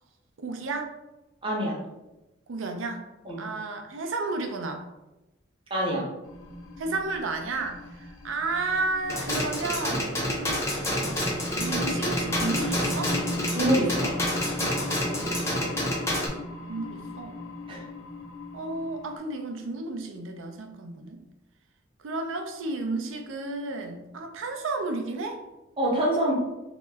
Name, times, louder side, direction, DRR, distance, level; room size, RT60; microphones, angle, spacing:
voice 1, 0.4-0.9 2.5-3.0 3.4-4.8 6.8-13.2 15.0-15.6 16.7-17.4 18.5-21.2 22.0-25.4, right 3 dB, 80° right, 4 dB, 0.5 m, -32 dB
voice 2, 1.4-1.8 3.3-3.5 5.7-6.1 13.6-14.1 17.7-17.8 25.8-26.3, right 1 dB, 25° right, -3 dB, 0.7 m, -25 dB
sound 1, 6.2-19.2, left 1 dB, 85° left, 0.4 m, -37 dB
sound 2, 9.1-16.3, left 1 dB, 15° left, 0.6 m, -29 dB
2.8 x 2.1 x 3.4 m, 1.0 s
head